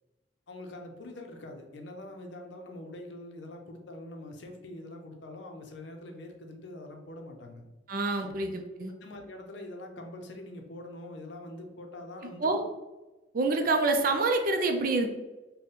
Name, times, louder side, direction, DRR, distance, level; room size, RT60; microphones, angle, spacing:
voice 1, 0.5-7.6 8.2-8.4 9.0-12.6, left 1 dB, 75° left, 4 dB, 0.6 m, -44 dB
voice 2, 7.9-8.9 12.4-12.6 13.3-15.1, right 3 dB, 50° right, 5 dB, 0.4 m, -27 dB
4.0 x 2.2 x 3.6 m, 1.1 s
head